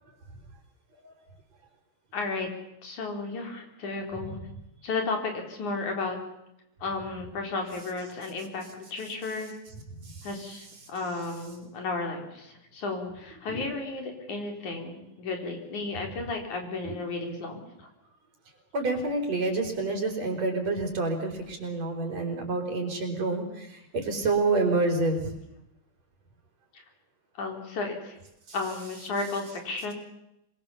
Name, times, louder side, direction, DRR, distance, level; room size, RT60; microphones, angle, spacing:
voice 1, 2.1-2.5 2.8-4.4 4.8-6.2 6.8-9.5 10.2-17.9 26.7-26.8 27.4-28.2 28.5-29.9, left 3 dB, 70° left, 3 dB, 5.5 m, -33 dB
voice 2, 18.7-23.4 23.9-25.3, right 3 dB, 55° right, 3 dB, 5.3 m, -27 dB
26.5 x 23.0 x 7.1 m, 0.83 s
omnidirectional pair, 3.6 m